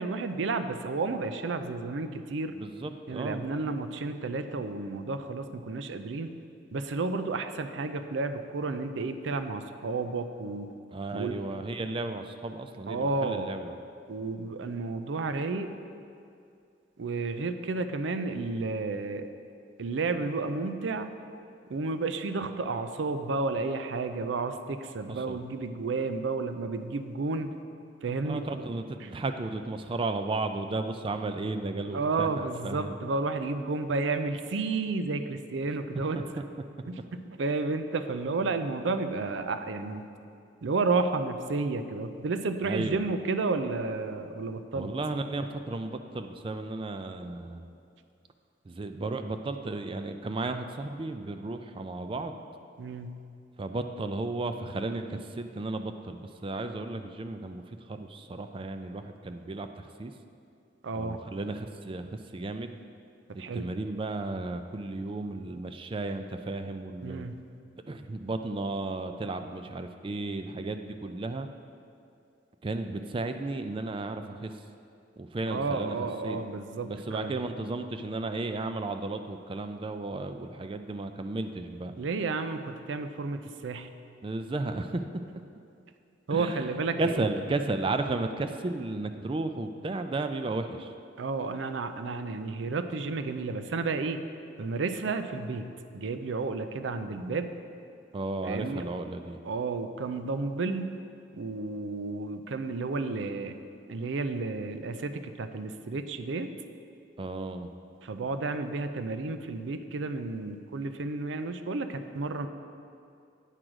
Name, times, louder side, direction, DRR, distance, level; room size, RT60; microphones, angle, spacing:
voice 1, 0.0-2.6 3.1-6.3 6.7-10.7 11.1-11.4 12.9-13.5 14.1-15.7 17.0-19.3 19.8-21.1 21.7-27.5 28.0-28.6 29.0-29.1 31.9-36.2 36.9-40.0 40.6-44.9 52.8-53.2 60.8-61.2 63.3-63.7 67.0-67.3 75.5-77.4 82.0-83.9 86.3-87.3 91.2-94.2 94.6-95.7 95.9-97.5 98.4-98.8 99.5-101.0 101.3-103.6 103.9-106.5 108.0-112.5, right 3 dB, 80° right, 9 dB, 0.5 m, -31 dB
voice 2, 2.5-3.5 10.9-13.8 25.1-25.4 28.2-33.0 36.1-36.2 42.6-43.1 44.7-47.7 48.7-52.4 53.6-57.6 57.9-60.1 60.9-62.8 63.5-67.3 67.9-71.5 72.6-74.5 75.2-76.0 76.2-76.4 76.8-81.9 84.2-85.0 86.3-86.7 87.0-90.9 98.1-99.4 107.2-107.7, right 2 dB, 30° right, 7 dB, 0.3 m, -34 dB
9.1 x 4.9 x 6.2 m, 2.5 s
head